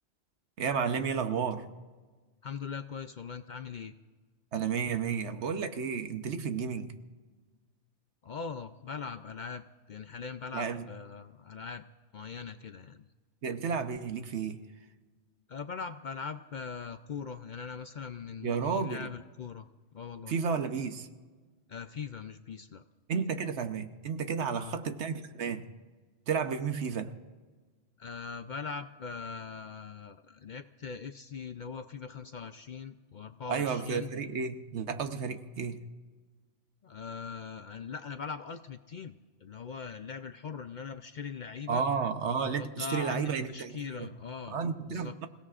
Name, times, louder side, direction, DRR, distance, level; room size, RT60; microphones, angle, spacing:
voice 1, 0.6-1.7 4.5-6.9 10.5-10.8 13.4-14.7 18.4-19.1 20.3-21.1 23.1-25.7 26.3-27.2 33.5-35.8 41.7-44.1 44.5-45.3, right 6 dB, 75° right, 9 dB, 1.2 m, -32 dB
voice 2, 2.4-3.9 8.2-11.8 12.1-13.1 15.5-19.7 19.9-20.3 21.7-22.8 24.5-24.7 28.0-34.1 36.8-41.8 42.4-44.6 44.9-45.1, left 6 dB, 55° left, 9 dB, 0.6 m, -41 dB
27.5 x 17.0 x 2.5 m, 1.4 s
omnidirectional pair, 1.2 m